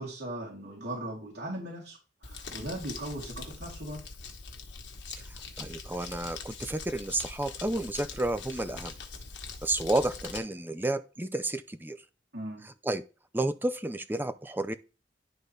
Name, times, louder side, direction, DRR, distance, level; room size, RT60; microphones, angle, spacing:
voice 1, 0.0-4.0 12.3-12.7, right 1 dB, 75° right, 3.5 m, -38 dB
Crumpling crinkling, 2.2-10.4, left 4 dB, 90° left, 1.4 m, -43 dB
voice 2, 5.6-8.9 9.6-12.0 12.8-13.0 13.3-14.7, right 2 dB, 10° right, 0.5 m, -31 dB
11.0 x 4.0 x 3.3 m
head